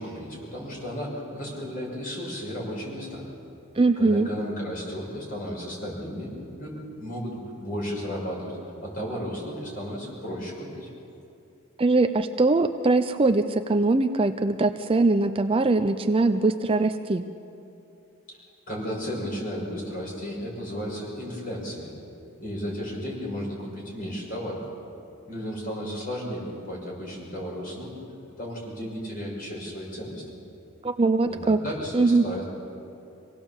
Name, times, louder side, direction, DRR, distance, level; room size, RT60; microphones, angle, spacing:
voice 1, 0.0-3.2 4.0-10.9 18.3-18.4 18.7-21.9 22.4-24.7 25.3-28.0 28.4-30.2 31.3-32.4, equal, 40° left, -2 dB, 5.8 m, -34 dB
voice 2, 3.8-4.3 11.8-17.3 30.8-31.6 31.9-32.2, right 3 dB, 25° right, 8 dB, 0.5 m, -22 dB
26.0 x 18.0 x 7.2 m, 2.8 s
head